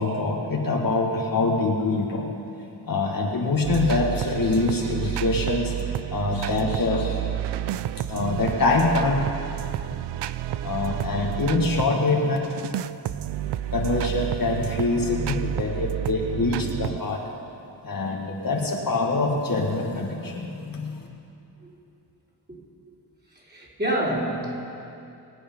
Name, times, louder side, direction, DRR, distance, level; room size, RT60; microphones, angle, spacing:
voice 1, 0.0-2.3 2.8-5.7 6.1-7.2 8.1-9.3 10.6-12.4 13.7-17.2 17.8-21.1, left 3 dB, 50° left, -1 dB, 1.9 m, -24 dB
sound 1, 3.6-11.9 12.4-17.0, right 11 dB, 75° right, 0.5 m, -30 dB
voice 2, 23.5-24.6, right 1 dB, 25° right, -5 dB, 4.0 m, -26 dB
23.5 x 8.7 x 5.4 m, 2.7 s
wide cardioid pair, 95°, 42 cm